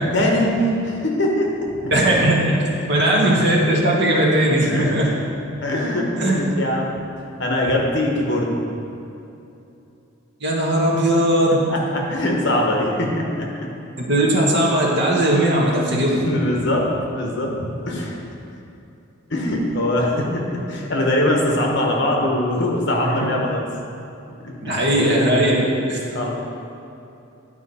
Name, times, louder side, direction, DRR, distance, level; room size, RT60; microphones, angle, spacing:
voice 1, 0.0-2.0 4.6-5.2 5.6-8.5 11.7-13.7 16.2-18.2 19.3-23.6 24.4-24.8 26.1-26.3, left 1 dB, 55° left, -1 dB, 1.1 m, -22 dB
voice 2, 1.9-2.6 2.9-5.1 6.2-6.5 10.4-11.7 14.1-16.2 23.0-23.1 24.6-26.0, right 1 dB, 50° right, -3 dB, 1.3 m, -18 dB
10.5 x 4.7 x 4.2 m, 2.8 s
head